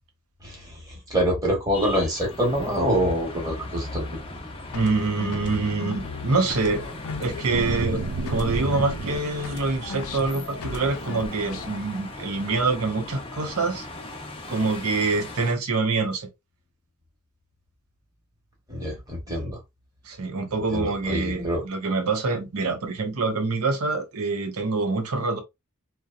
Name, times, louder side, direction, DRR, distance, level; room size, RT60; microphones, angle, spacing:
voice 1, 0.4-0.7 1.1-4.0 18.7-19.6 20.7-21.6, equal, 15° right, 1.1 m, -25 dB
sound 1, 1.7-15.5, left 2 dB, 25° left, 0.6 m, -39 dB
sound 2, 4.7-9.2 9.4-11.8, left 5 dB, 85° left, 0.4 m, -37 dB
voice 2, 4.7-6.8 7.2-13.9 14.5-16.3 20.1-25.4, right 3 dB, 90° right, 0.7 m, -26 dB
sound 3, 7.5-9.5 9.9-10.4, right 3 dB, 60° right, 0.4 m, -30 dB
2.8 x 2.1 x 2.4 m
head